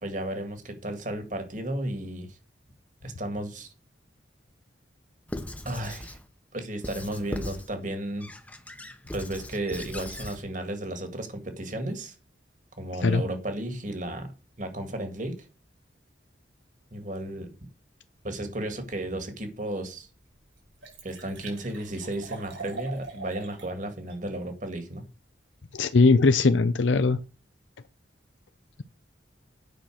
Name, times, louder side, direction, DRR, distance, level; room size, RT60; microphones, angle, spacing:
voice 1, 0.0-2.4 3.0-3.7 5.6-6.2 6.5-8.3 9.1-12.1 12.8-14.3 14.6-15.5 16.9-17.5 18.2-20.1 21.0-25.0, right 1 dB, 40° right, 7 dB, 1.9 m, -33 dB
Squeak / Writing, 5.3-6.2 6.8-7.7 8.2-10.4, left 1 dB, 10° left, 0.9 m, -38 dB
Liquid, 19.7-19.8 20.2-20.3 20.5-23.7 24.1-24.2, right 4 dB, 80° right, 5.4 m, -41 dB
voice 2, 25.7-27.2, left 3 dB, 80° left, 12 dB, 0.6 m, -20 dB
9.2 x 5.8 x 6.2 m, 0.33 s
head